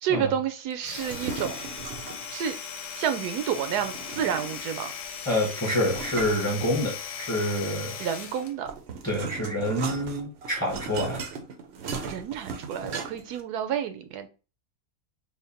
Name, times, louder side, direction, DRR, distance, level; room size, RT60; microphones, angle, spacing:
voice 1, 0.0-1.6 2.3-2.6 3.0-4.9 8.0-8.7 12.0-14.3, right 8 dB, 85° right, 9 dB, 1.1 m, -30 dB
Domestic sounds home sounds, 0.7-8.6, left 7 dB, 60° left, 0.8 m, -38 dB
sound 1, 0.9-2.3 3.8-4.8 5.8-7.2 8.3-13.4, right 5 dB, 65° right, 0.7 m, -37 dB
voice 2, 5.3-8.0 9.0-11.2, equal, 15° left, 0 dB, 0.7 m, -27 dB
3.5 x 2.1 x 3.9 m, 0.33 s
omnidirectional pair, 1.6 m